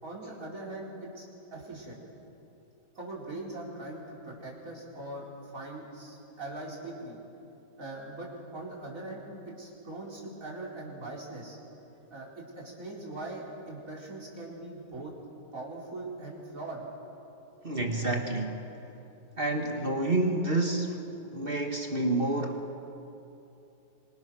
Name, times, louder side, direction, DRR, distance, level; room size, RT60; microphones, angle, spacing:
voice 1, 0.0-1.2 1.5-2.0 2.9-7.2 7.8-11.6 12.1-15.1 15.5-16.8, right 2 dB, 50° right, -3 dB, 4.8 m, -41 dB
voice 2, 17.6-18.7 19.4-21.1 21.3-22.8, right 2 dB, 35° right, 2 dB, 1.8 m, -29 dB
27.5 x 25.5 x 6.3 m, 2.9 s
omnidirectional pair, 1.9 m